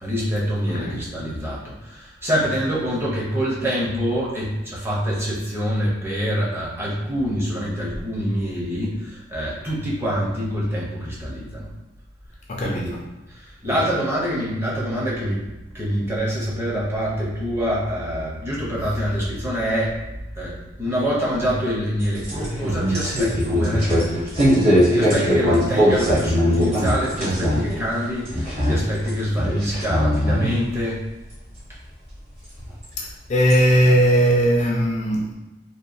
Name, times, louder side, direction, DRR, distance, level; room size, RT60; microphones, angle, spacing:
voice 1, 0.0-11.7 12.6-12.9 13.3-15.5 15.7-20.0 20.3-24.5 24.9-31.0 32.7-32.8, equal, 15° right, -6 dB, 0.6 m, -25 dB
voice 2, 0.7-1.0 12.5-13.0 13.7-13.8 33.0-35.3, equal, 40° left, -2 dB, 0.3 m, -19 dB
sound 1, 22.0-27.8 28.0-29.1 29.3-30.5 31.6-31.7 32.8-32.9 33.5-33.6, equal, 35° right, 0.9 m, -20 dB
2.8 x 2.2 x 2.5 m, 1.0 s
head